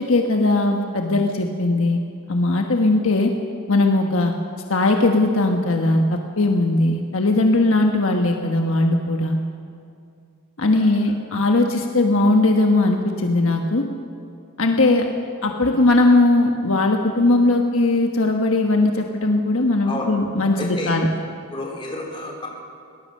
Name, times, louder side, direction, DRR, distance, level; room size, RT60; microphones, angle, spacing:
voice 1, 0.0-2.0 2.3-3.3 3.7-4.3 4.7-9.4 10.6-13.8 14.6-15.1 15.4-21.1, left 2 dB, 65° left, 3 dB, 1.3 m, -19 dB
voice 2, 19.8-20.2 20.5-20.9 21.5-22.5, left 1 dB, 20° left, -1 dB, 3.8 m, -30 dB
23.0 x 18.5 x 6.6 m, 2.5 s
head